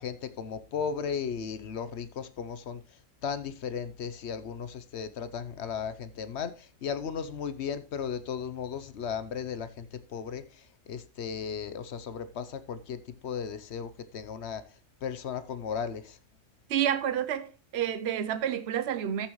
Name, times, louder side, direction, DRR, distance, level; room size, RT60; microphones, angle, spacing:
voice 1, 0.0-2.8 3.2-14.6 15.0-16.2, left 7 dB, 65° left, 1.0 m, -36 dB
voice 2, 16.7-19.3, right 10 dB, 65° right, 1.0 m, -29 dB
14.0 x 7.2 x 3.1 m
omnidirectional pair, 1.2 m